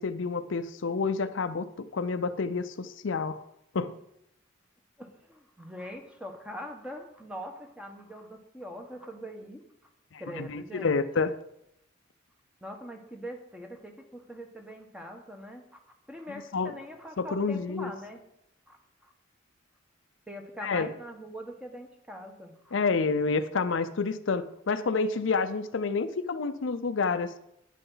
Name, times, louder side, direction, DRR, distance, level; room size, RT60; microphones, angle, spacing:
voice 1, 0.0-3.4 3.7-4.0 10.1-11.4 16.5-16.7 17.2-17.9 20.6-20.9 22.7-27.4, left 4 dB, 70° left, 12 dB, 0.5 m, -29 dB
voice 2, 5.0-9.6 10.2-11.0 12.6-15.8 16.1-18.2 18.7-18.8 19.0-19.1 20.3-22.8, equal, 5° right, 3 dB, 1.1 m, -42 dB
10.5 x 9.2 x 3.9 m, 0.78 s
head